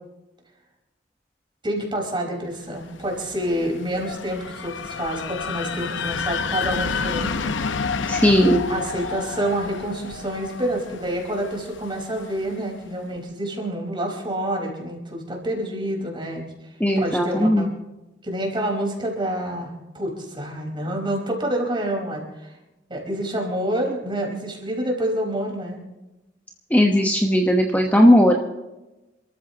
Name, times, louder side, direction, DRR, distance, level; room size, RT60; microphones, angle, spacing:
voice 1, 1.6-7.5 8.7-16.4 17.0-17.7 18.2-22.5 22.9-25.8, right 1 dB, 25° right, 0 dB, 4.7 m, -28 dB
sound 1, 2.8-12.6, left 5 dB, 80° left, 0.7 m, -30 dB
voice 2, 8.1-8.7 16.8-17.6 26.7-28.4, equal, 10° left, 1 dB, 1.1 m, -17 dB
28.5 x 14.0 x 3.0 m, 1.0 s
head